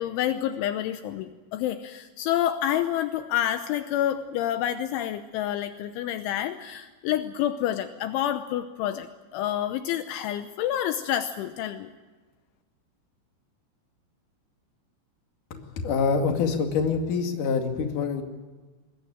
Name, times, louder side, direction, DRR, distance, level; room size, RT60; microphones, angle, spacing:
voice 1, 0.0-11.9, left 11 dB, 80° left, 9 dB, 3.2 m, -28 dB
voice 2, 15.5-18.2, left 5 dB, 50° left, 4 dB, 3.3 m, -26 dB
24.0 x 20.5 x 8.9 m, 1.3 s
omnidirectional pair, 5.7 m